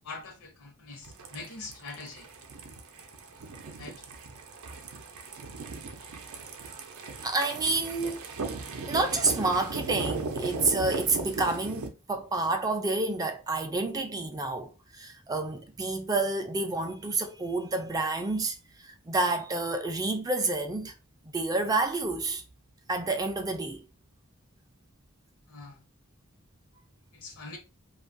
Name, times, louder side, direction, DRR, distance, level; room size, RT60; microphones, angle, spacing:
voice 1, 0.0-2.3 3.8-4.0 25.5-25.8 27.1-27.6, left 3 dB, 80° left, 0.8 m, -43 dB
sound 1, 1.0-11.9, right 3 dB, 75° right, 0.5 m, -37 dB
voice 2, 7.2-8.2 8.9-20.9 21.3-22.4 22.9-23.8, right 3 dB, 15° right, 0.3 m, -29 dB
2.6 x 2.3 x 2.5 m
head